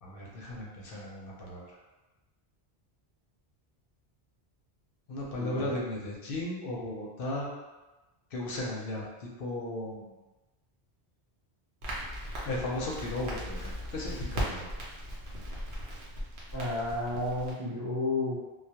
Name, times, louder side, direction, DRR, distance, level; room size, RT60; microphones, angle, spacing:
voice 1, 0.0-1.7 5.1-7.5 8.3-10.1 12.4-14.7, left 1 dB, 65° left, -3 dB, 0.7 m, -36 dB
voice 2, 5.4-5.7 16.5-18.4, left 2 dB, 30° right, -9 dB, 0.4 m, -32 dB
Crackle, 11.8-17.5, equal, 60° right, 0.7 m, -38 dB
2.2 x 2.1 x 2.8 m, 1.1 s
omnidirectional pair, 1.1 m